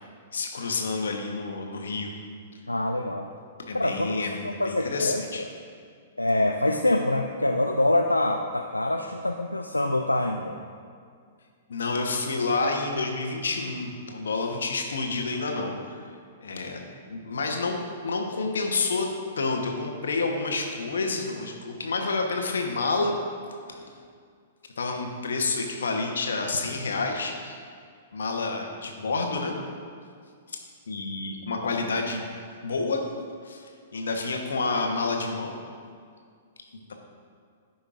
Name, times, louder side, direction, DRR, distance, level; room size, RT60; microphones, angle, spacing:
voice 1, 0.3-2.1 3.7-5.4 11.7-16.1 16.4-16.8 17.1-17.8 18.0-19.1 19.4-23.2 23.7-23.8 24.8-27.6 28.1-29.5 30.5-30.6 30.9-32.2 32.6-33.0 33.4-35.6, left 3 dB, 65° left, 3 dB, 1.1 m, -29 dB
voice 2, 2.7-3.3 3.8-4.2 4.6-5.5 6.2-10.6, left 1 dB, 90° left, 3 dB, 0.4 m, -25 dB
14.5 x 5.3 x 2.6 m, 2.1 s
figure-of-eight pair, 110°, 0 cm